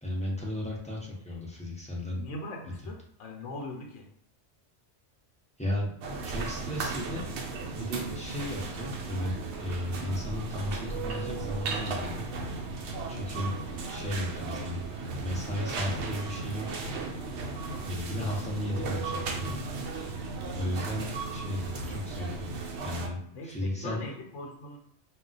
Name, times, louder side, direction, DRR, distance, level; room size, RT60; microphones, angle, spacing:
voice 1, 0.0-2.2 5.6-7.2 7.7-12.3 13.1-13.6 13.9-14.8 15.2-16.9 17.8-19.6 20.5-22.5 22.8-24.1, left 1 dB, 10° left, -5 dB, 0.5 m, -35 dB
voice 2, 2.1-4.1 23.3-24.8, left 2 dB, 85° left, 1 dB, 1.0 m, -41 dB
sound 1, 6.0-23.1, right 3 dB, 70° right, 0.8 m, -36 dB
2.3 x 2.1 x 3.8 m, 0.71 s
omnidirectional pair, 1.2 m